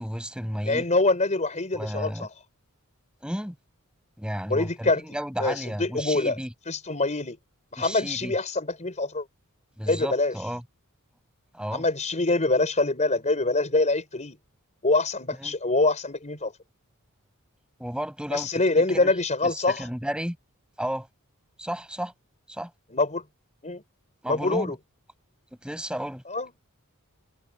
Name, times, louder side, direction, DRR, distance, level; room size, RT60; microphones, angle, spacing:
voice 1, 0.0-0.8 1.8-2.3 3.2-3.6 4.2-6.5 7.8-8.3 9.8-10.6 11.5-11.9 15.4-15.5 17.8-19.1 19.4-20.4 20.8-21.1 21.6-22.1 22.5-22.7 24.2-24.8 25.6-26.2, equal, 5° right, 7.4 m, -33 dB
voice 2, 0.6-2.3 4.5-6.4 6.7-7.4 7.7-9.2 9.9-10.3 11.7-14.4 14.8-16.5 18.3-19.8 22.9-23.2 23.6-23.8 24.3-24.8 26.3-26.5, left 2 dB, 35° left, 4.6 m, -25 dB
head